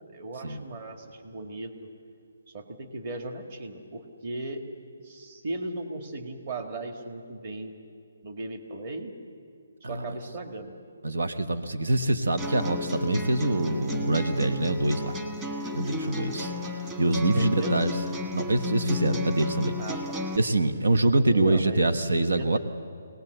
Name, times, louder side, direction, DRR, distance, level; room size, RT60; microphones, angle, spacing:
voice 1, 0.1-1.9 2.5-4.6 5.0-7.8 8.2-9.1 9.8-10.7 17.3-17.8 19.8-20.2 21.3-22.6, right 2 dB, 35° right, 5 dB, 2.0 m, -37 dB
voice 2, 9.8-10.1 11.0-15.2 15.7-16.5 17.0-17.9 18.3-19.8 20.3-22.6, right 2 dB, 90° right, 8 dB, 1.2 m, -25 dB
sound 1, 12.4-20.4, left 2 dB, 15° right, 1.5 m, -33 dB
24.5 x 19.0 x 8.0 m, 2.4 s
hypercardioid pair, 170°, 0 cm